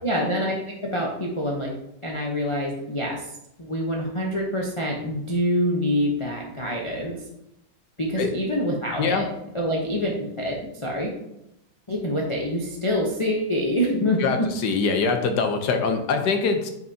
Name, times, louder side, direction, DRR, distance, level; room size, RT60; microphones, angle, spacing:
voice 1, 0.0-1.7 2.0-3.3 3.6-7.2 8.0-9.3 9.5-11.1 11.9-14.2, equal, 40° left, -3 dB, 0.4 m, -26 dB
voice 2, 14.2-16.7, left 4 dB, 65° left, 6 dB, 1.3 m, -23 dB
9.0 x 5.5 x 2.7 m, 0.85 s
omnidirectional pair, 2.1 m